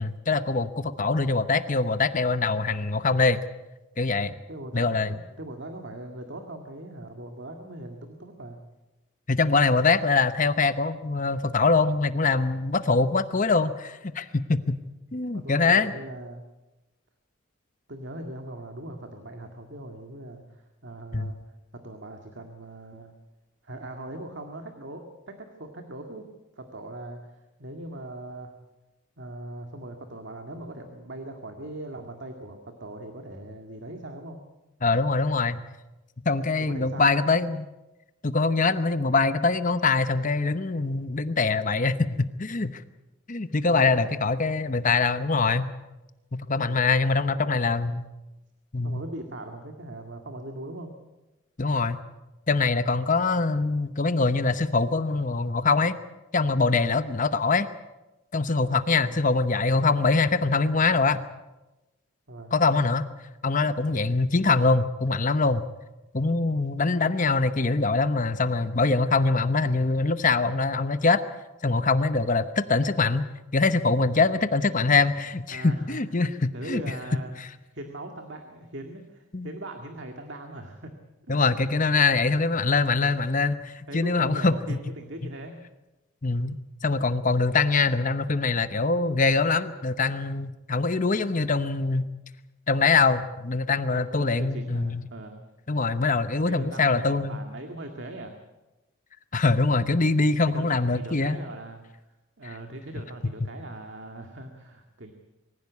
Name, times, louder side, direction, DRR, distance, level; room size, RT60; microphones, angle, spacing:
voice 1, 0.0-3.4 4.0-4.3 4.7-5.1 9.3-14.8 15.1-15.9 21.1-21.3 34.8-35.6 36.3-37.7 38.2-42.8 43.3-45.7 46.3-48.0 48.7-49.0 51.6-52.0 52.5-56.0 56.3-57.7 58.3-61.2 62.5-63.1 63.4-65.7 66.1-71.2 71.6-73.2 73.5-76.9 77.4-77.5 79.3-79.5 81.3-84.8 86.2-86.6 86.8-92.1 92.7-95.0 95.7-97.4 99.3-101.4, left 3 dB, 35° left, 11 dB, 0.9 m, -23 dB
voice 2, 4.5-8.6 15.3-16.4 17.9-21.4 21.7-23.1 23.6-26.3 26.6-28.5 29.2-34.4 36.6-37.3 43.6-44.2 46.6-46.9 47.3-47.7 48.8-50.9 58.9-59.3 62.3-62.5 66.4-66.5 75.5-76.3 76.5-77.3 77.7-80.9 81.3-81.4 83.0-83.2 83.9-85.6 93.7-95.4 96.4-98.4 100.5-101.8 102.4-105.1, right 1 dB, 55° right, 4 dB, 2.0 m, -40 dB
24.5 x 15.5 x 8.4 m, 1.0 s
head